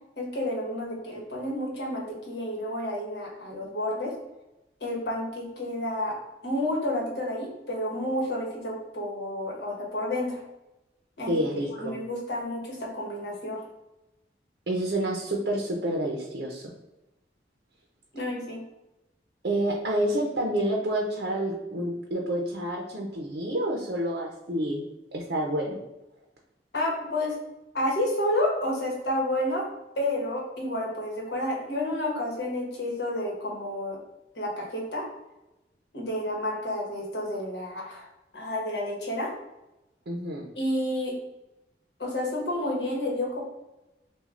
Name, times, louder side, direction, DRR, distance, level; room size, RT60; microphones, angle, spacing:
voice 1, 0.2-4.1 4.8-6.1 6.4-10.4 11.2-11.4 11.8-13.6 18.1-18.6 26.7-27.4 27.7-29.6 30.0-34.0 34.3-35.0 35.9-38.1 38.3-39.3 40.6-41.2 42.0-43.4, left 1 dB, 70° left, -2 dB, 1.2 m, -30 dB
voice 2, 11.3-12.0 14.7-16.6 19.4-24.8 25.1-25.8 40.1-40.4, right 1 dB, 65° right, 0 dB, 0.6 m, -28 dB
6.3 x 2.3 x 2.5 m, 0.97 s
head